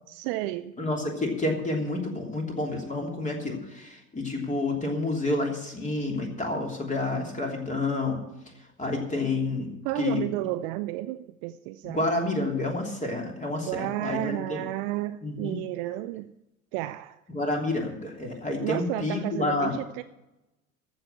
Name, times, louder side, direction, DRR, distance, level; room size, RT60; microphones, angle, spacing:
voice 1, 0.1-0.8 9.8-12.1 13.7-16.3 16.7-17.2 18.6-20.0, right 16 dB, 45° right, 12 dB, 0.5 m, -32 dB
voice 2, 0.8-8.2 8.8-9.7 10.0-10.2 11.8-14.6 15.2-15.5 17.3-19.7, left 2 dB, 20° left, 1 dB, 3.1 m, -29 dB
14.5 x 6.2 x 8.5 m, 0.93 s
figure-of-eight pair, 70°, 41 cm